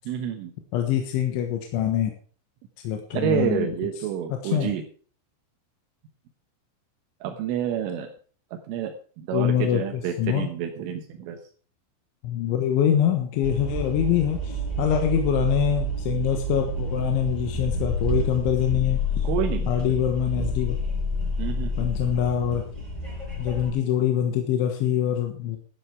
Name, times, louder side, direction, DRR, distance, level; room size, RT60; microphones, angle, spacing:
voice 1, 0.1-0.5 3.1-4.8 7.2-8.1 8.5-11.4 17.4-17.5 19.2-19.7 21.4-21.9, right 9 dB, 85° right, 3 dB, 3.8 m, -29 dB
voice 2, 0.7-2.1 2.8-3.7 4.4-4.7 9.3-10.5 12.2-19.3 19.7-20.8 21.8-22.6 23.4-25.6, left 10 dB, 80° left, 4 dB, 3.7 m, -24 dB
sound 1, 13.4-23.7, equal, 5° right, 6.3 m, -29 dB
12.5 x 10.0 x 4.8 m, 0.42 s
omnidirectional pair, 5.6 m